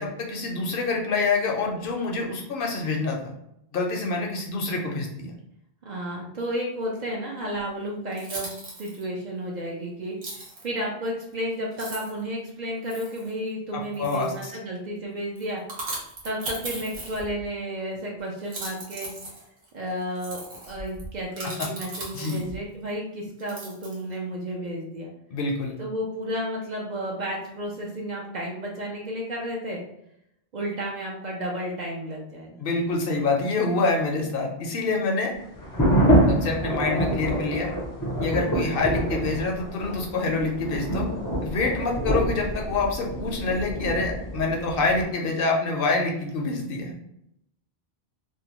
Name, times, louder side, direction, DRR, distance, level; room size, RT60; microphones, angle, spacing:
voice 1, 0.0-3.3 3.7-5.3 13.7-14.5 21.6-21.7 22.1-22.4 25.3-25.8 32.6-35.3 36.3-37.7 38.2-41.1 41.4-46.9, left 3 dB, 65° left, 0 dB, 0.7 m, -26 dB
voice 2, 5.8-8.5 8.8-15.6 16.2-19.1 19.7-25.1 25.8-29.8 30.5-32.6, equal, 55° right, -2 dB, 0.5 m, -32 dB
sound 1, 7.6-7.7 8.1-9.0 10.2-10.6 11.3-11.4 11.7-12.2 12.8-13.3 13.9-14.4 15.4-17.5 18.4-22.6 23.4-24.2, right 2 dB, 90° right, 1.1 m, -38 dB
sound 2, 35.6-45.0, right 1 dB, 30° left, 0.4 m, -26 dB
2.6 x 2.1 x 2.8 m, 0.79 s
omnidirectional pair, 1.1 m